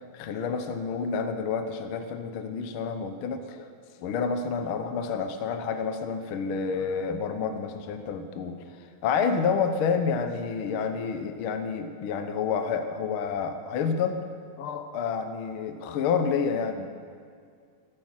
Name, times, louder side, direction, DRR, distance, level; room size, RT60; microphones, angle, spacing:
voice 1, 0.1-3.7 4.0-8.6 9.0-14.2 14.6-16.9, left 6 dB, 65° left, 8 dB, 1.3 m, -29 dB
14.5 x 13.0 x 7.5 m, 2.2 s
omnidirectional pair, 3.4 m